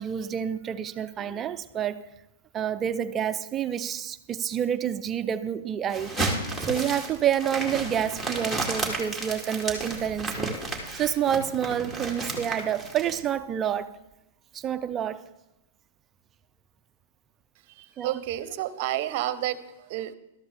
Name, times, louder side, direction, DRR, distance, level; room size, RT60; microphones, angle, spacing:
voice 1, 0.0-2.0 2.5-6.2 6.7-10.6 10.9-14.0 14.5-15.2 18.0-18.1, right 9 dB, 25° right, 0.5 m, -28 dB
sound 1, 5.9-13.2, right 2 dB, ahead, 2.2 m, -32 dB
voice 2, 17.7-20.1, right 13 dB, 50° right, 0.8 m, -31 dB
13.0 x 13.0 x 3.4 m
hypercardioid pair, 125°, 0 cm